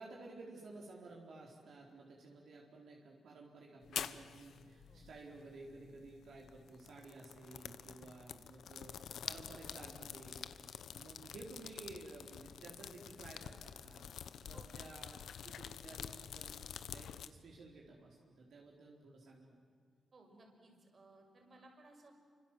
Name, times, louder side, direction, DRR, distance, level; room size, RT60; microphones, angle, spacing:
voice 1, 0.0-14.1 14.4-16.6 16.9-19.5, right 3 dB, 70° right, -1 dB, 4.2 m, -54 dB
sound 1, 3.8-17.3, left 8 dB, 80° left, 1.1 m, -48 dB
voice 2, 14.5-14.9 20.1-22.1, right 2 dB, 35° right, 2 dB, 6.2 m, -61 dB
30.0 x 25.5 x 7.7 m, 2.1 s
wide cardioid pair, 140°, 0 cm